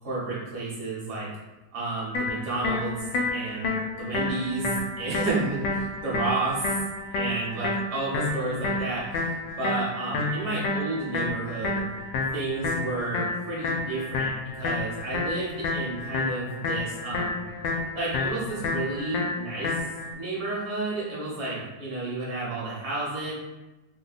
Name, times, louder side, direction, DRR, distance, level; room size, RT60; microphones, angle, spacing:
voice 1, 0.0-1.3 1.7-6.7 7.1-9.3 9.6-11.8 12.3-17.4 17.9-19.7 20.1-23.3, right 2 dB, 50° right, -7 dB, 1.1 m, -31 dB
sound 1, 2.1-20.1, left 2 dB, 90° left, 1.3 m, -30 dB
3.0 x 2.2 x 3.9 m, 1.1 s
omnidirectional pair, 1.9 m